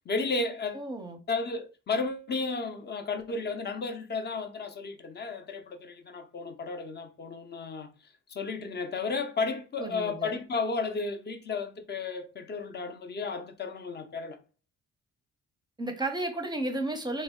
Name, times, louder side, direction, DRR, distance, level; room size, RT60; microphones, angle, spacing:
voice 1, 0.0-0.8 1.3-7.9 8.3-14.4, left 4 dB, 35° left, 0.6 m, -33 dB
voice 2, 0.7-1.2 9.8-10.3 15.8-17.2, right 2 dB, 15° right, 0.6 m, -33 dB
3.3 x 2.1 x 3.6 m
cardioid pair, 90°, 30 cm